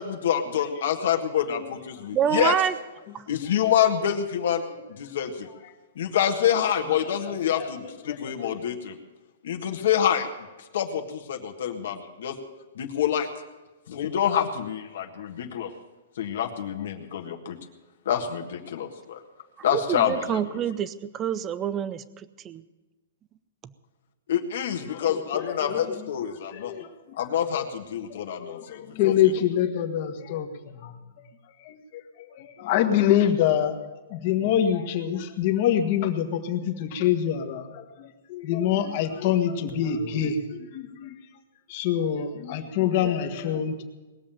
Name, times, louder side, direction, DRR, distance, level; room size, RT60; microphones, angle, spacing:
voice 1, 0.0-2.5 3.3-4.6 4.9-5.5 5.9-9.0 9.4-10.3 10.7-12.3 12.7-13.3 13.9-15.7 16.2-17.6 18.0-19.2 19.6-20.6 24.3-26.7 27.2-29.1, left 9 dB, 60° left, 3 dB, 1.7 m, -27 dB
voice 2, 2.1-2.7 3.1-3.3 19.7-22.6, right 9 dB, 15° right, 15 dB, 0.5 m, -27 dB
voice 3, 6.9-7.7 8.1-8.5 24.9-26.1 26.3-27.2 27.5-27.7 28.1-31.2 31.6-33.8 34.1-41.2 41.7-43.8, left 9 dB, 35° left, 5 dB, 1.5 m, -26 dB
20.0 x 7.5 x 9.0 m, 1.2 s
hypercardioid pair, 170°, 0 cm